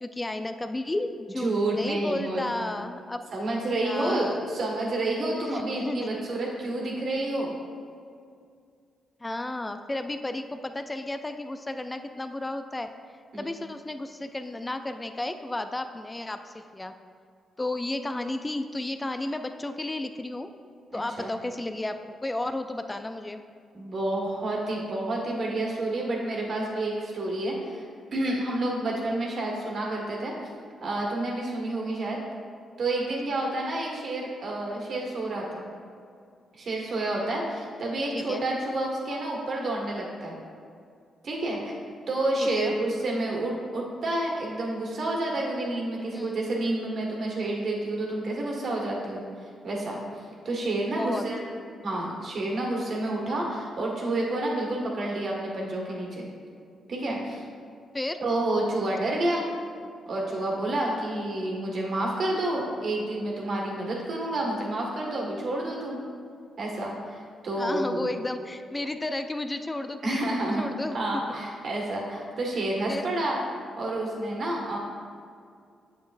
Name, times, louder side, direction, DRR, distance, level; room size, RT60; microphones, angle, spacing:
voice 1, 0.0-3.2 3.8-4.4 5.4-6.2 9.2-12.9 13.4-16.9 17.6-20.5 20.9-23.4 33.4-33.5 38.1-38.4 42.4-42.7 43.3-43.4 46.1-46.4 50.9-51.3 57.9-58.2 67.6-71.2 72.9-73.0, left 2 dB, 20° left, 8 dB, 0.4 m, -33 dB
voice 2, 1.4-2.7 3.3-7.5 13.3-13.5 20.9-21.3 23.7-27.8 28.1-30.3 30.8-32.2 32.8-35.7 36.6-40.4 41.2-41.7 42.1-49.2 49.6-50.0 50.4-51.4 51.8-56.3 56.9-57.4 58.2-59.4 60.1-66.0 66.6-68.0 70.0-70.6 70.9-73.4 73.8-74.8, right 1 dB, 60° right, -2 dB, 1.7 m, -29 dB
7.7 x 7.0 x 2.6 m, 2.3 s
supercardioid pair, 60°, 0 cm